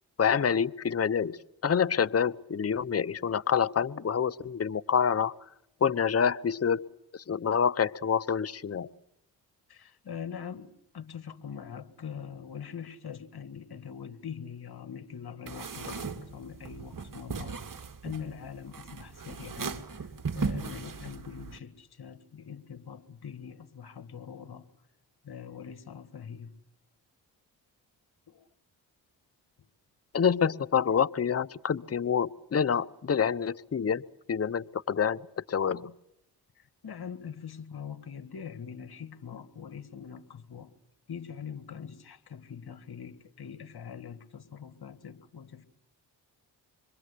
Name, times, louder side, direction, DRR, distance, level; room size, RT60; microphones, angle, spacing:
voice 1, 0.2-1.4 1.6-5.3 5.8-6.9 7.3-8.9 30.1-35.9, left 7 dB, 30° left, 0.9 m, -27 dB
voice 2, 9.7-19.9 20.3-24.7 25.2-26.5 28.3-28.5 29.6-29.7 36.6-40.7 41.1-45.6, left 7 dB, 50° left, 2.0 m, -43 dB
sound 1, 15.5-21.6, right 4 dB, 40° right, 2.4 m, -37 dB
26.5 x 22.5 x 8.5 m
supercardioid pair, 45°, 48 cm